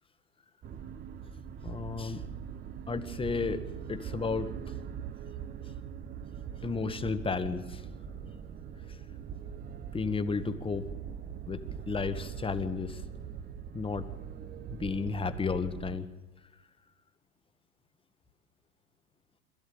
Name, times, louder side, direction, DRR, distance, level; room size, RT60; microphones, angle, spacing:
sound 1, 0.6-16.0, right 8 dB, 20° right, 0.9 m, -42 dB
voice 1, 1.6-2.2 2.9-4.7 5.6-5.7 6.6-7.9 8.8-9.1 9.9-10.9 11.5-13.1 13.7-14.1 14.7-16.1 16.4-16.7, left 4 dB, 10° left, 11 dB, 1.4 m, -33 dB
26.0 x 14.5 x 8.7 m, 1.1 s
figure-of-eight pair, 90°, 46 cm